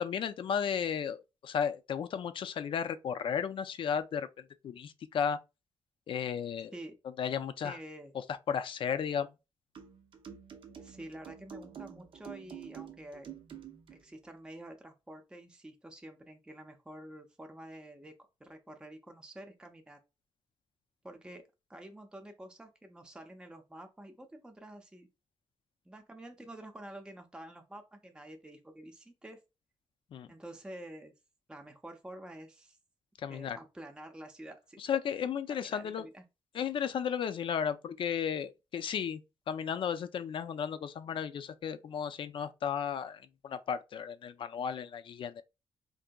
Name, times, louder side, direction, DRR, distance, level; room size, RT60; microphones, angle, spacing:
voice 1, 0.0-4.3 4.6-5.4 6.1-6.7 7.2-7.8 8.5-9.3 30.1-30.3 33.2-33.6 34.8-36.1 36.5-39.2 39.5-45.4, left 7 dB, 60° left, 0.4 m, -34 dB
voice 2, 7.6-8.1 10.8-13.3 13.9-18.1 18.4-20.0 21.0-21.4 21.7-25.1 25.9-29.4 30.3-31.1 31.5-32.8 33.3-34.8 35.5-36.2, right 1 dB, 10° right, 0.5 m, -48 dB
sound 1, 9.7-14.0, right 8 dB, 60° right, 0.6 m, -48 dB
3.7 x 2.6 x 2.2 m
cardioid pair, 115°, 10 cm